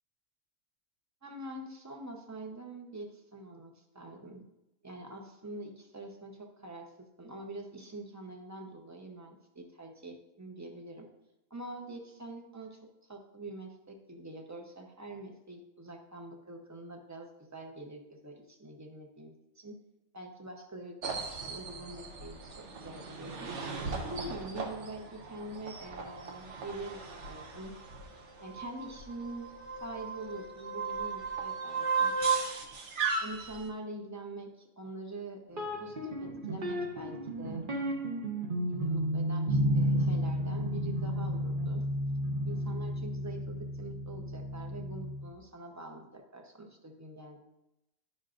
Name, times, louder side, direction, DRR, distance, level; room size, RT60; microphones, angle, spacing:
voice 1, 1.2-4.4 4.8-11.1 11.5-12.8 13.1-19.8 20.1-21.0 21.4-23.5 24.0-27.7 28.4-29.5 29.8-32.1 33.2-37.6 38.7-41.8 42.4-47.4, right 2 dB, 15° right, 2 dB, 0.6 m, -45 dB
sound 1, 21.0-33.7, right 5 dB, 60° right, 1.1 m, -36 dB
sound 2, 35.5-45.3, equal, 40° right, 1.0 m, -32 dB
10.5 x 5.8 x 2.5 m, 0.89 s
omnidirectional pair, 1.5 m